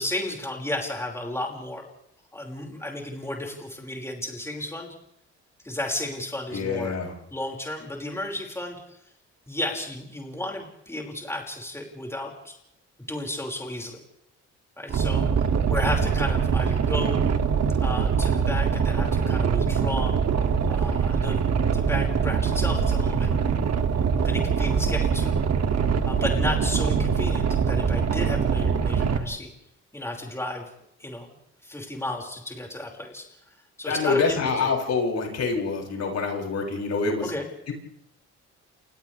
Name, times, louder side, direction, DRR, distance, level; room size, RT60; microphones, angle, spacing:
voice 1, 0.0-1.9 2.3-4.9 5.6-7.0 7.3-8.8 9.5-12.6 13.1-14.0 14.8-15.3 15.7-17.2 17.8-20.1 20.7-21.4 21.7-23.3 24.2-25.4 26.0-29.5 29.9-30.7 31.0-31.3 31.6-33.3 33.8-34.7 37.2-37.5, left 1 dB, 10° left, 0 dB, 5.7 m, -33 dB
voice 2, 6.5-7.1 33.8-37.3 37.7-37.8, left 4 dB, 60° left, 0 dB, 7.8 m, -26 dB
Boat Water vehicle, 14.9-29.2, right 6 dB, 60° right, 2.7 m, -23 dB
29.5 x 29.5 x 3.5 m, 0.76 s
cardioid pair, 90°, 30 cm